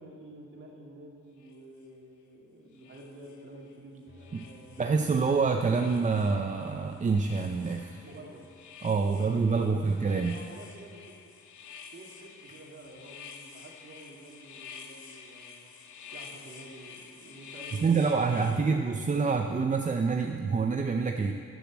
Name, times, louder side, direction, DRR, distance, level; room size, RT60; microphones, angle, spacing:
voice 1, 0.0-4.9 5.7-6.0 8.0-8.4 9.1-11.1 11.9-15.7 16.1-18.8, right 1 dB, 40° right, -1 dB, 2.7 m, -49 dB
sound 1, 1.4-1.5 2.7-3.7 4.2-5.3 5.6-18.6, left 6 dB, 75° left, 1.1 m, -49 dB
sound 2, 4.1-9.2, left 3 dB, 35° left, 3.5 m, -57 dB
voice 2, 4.8-8.1 8.8-10.3 17.8-21.3, right 4 dB, 25° right, 4 dB, 0.6 m, -27 dB
13.5 x 6.9 x 7.5 m, 2.3 s
cardioid pair, 90°, 30 cm